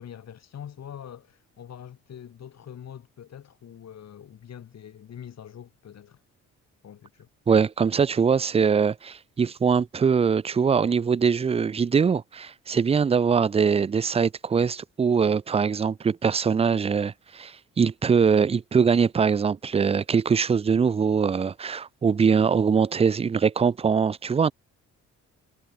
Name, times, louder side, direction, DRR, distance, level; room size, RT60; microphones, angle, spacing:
voice 1, 0.0-6.2 6.8-7.3, left 9 dB, 60° left, 5.3 m, -44 dB
voice 2, 7.5-24.5, right 6 dB, 20° right, 0.4 m, -22 dB
cardioid pair, 90°, 30 cm